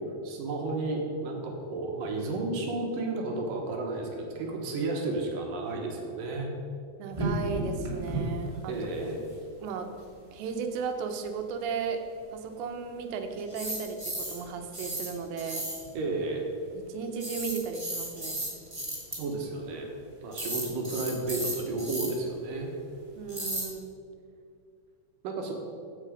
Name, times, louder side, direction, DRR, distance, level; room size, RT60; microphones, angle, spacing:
voice 1, 0.0-6.5 8.7-9.2 15.9-16.4 19.1-19.9 20.2-22.7 25.2-25.5, right 2 dB, 65° right, 1 dB, 2.5 m, -32 dB
voice 2, 7.0-8.7 9.0-9.1 9.6-9.9 10.3-12.0 12.3-15.6 16.7-18.4 23.2-23.9, right 5 dB, 85° right, 5 dB, 3.1 m, -35 dB
sound 1, 7.1-8.2 8.5-8.6 8.9-9.0 13.4-14.5 14.7-15.1 15.4-15.9 17.2-19.1 20.3-22.1 23.3-23.6, right 1 dB, 20° right, 0.7 m, -33 dB
15.0 x 6.0 x 5.0 m, 2.4 s
omnidirectional pair, 4.9 m